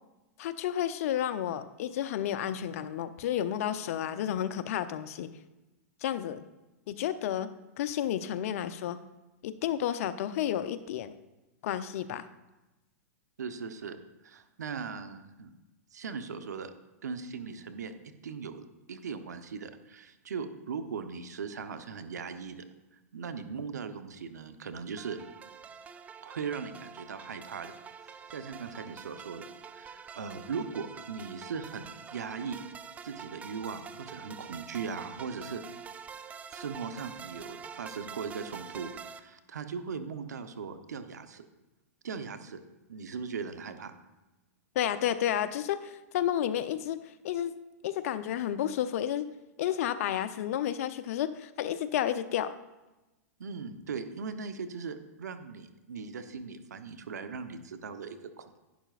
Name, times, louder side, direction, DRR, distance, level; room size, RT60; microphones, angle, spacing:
voice 1, 0.4-5.3 6.0-6.5 6.9-7.5 7.8-9.0 9.4-11.1 11.6-12.3 44.7-47.5 47.8-49.3 49.6-52.6, left 10 dB, 60° left, 12 dB, 0.6 m, -31 dB
voice 2, 13.4-14.0 14.2-15.5 15.9-16.7 17.0-17.9 18.2-22.6 23.1-25.2 26.2-27.7 28.0-32.6 33.0-35.6 36.5-41.5 42.0-42.6 42.9-44.0 53.4-58.6, right 5 dB, 90° right, 9 dB, 0.9 m, -39 dB
sound 1, 25.0-39.2, right 6 dB, 15° right, 0.4 m, -46 dB
11.0 x 10.0 x 2.5 m, 1.0 s
hypercardioid pair, 125°, 9 cm